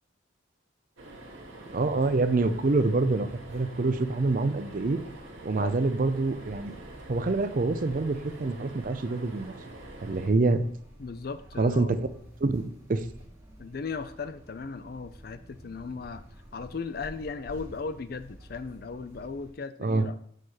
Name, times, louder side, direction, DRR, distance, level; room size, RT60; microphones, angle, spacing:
sound 1, 1.0-10.3, right 2 dB, 80° right, 1.5 m, -46 dB
sound 2, 1.6-19.5, equal, 10° right, 2.2 m, -50 dB
voice 1, 1.7-5.0 5.4-6.7 7.1-9.5 10.0-10.7 11.6-12.0 12.4-12.6 12.9-13.0 19.8-20.1, right 3 dB, 45° right, 11 dB, 0.5 m, -26 dB
voice 2, 11.0-11.9 13.6-16.2 16.5-20.2, left 4 dB, 50° left, 12 dB, 0.5 m, -37 dB
6.5 x 4.2 x 6.4 m, 0.64 s
head